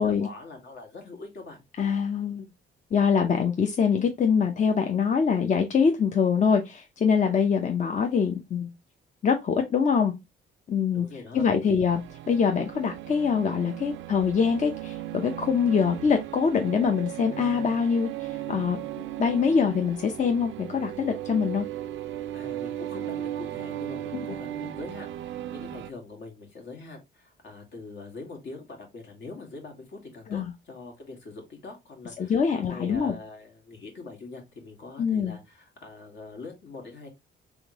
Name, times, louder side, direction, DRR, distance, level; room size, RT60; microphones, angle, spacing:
voice 1, 0.0-1.6 10.9-11.8 22.3-37.1, left 3 dB, 65° left, 1.7 m, -43 dB
voice 2, 1.8-2.5 2.9-8.7 9.2-10.1 10.7-11.1 11.3-12.0 12.3-18.8 19.2-21.7 24.1-24.2 30.3-30.5 32.2-33.1 35.0-35.3, left 6 dB, 40° left, 0.7 m, -24 dB
sound 1, 11.9-25.9, right 12 dB, 75° right, 0.4 m, -36 dB
3.7 x 3.5 x 2.9 m
cardioid pair, 90°, 20 cm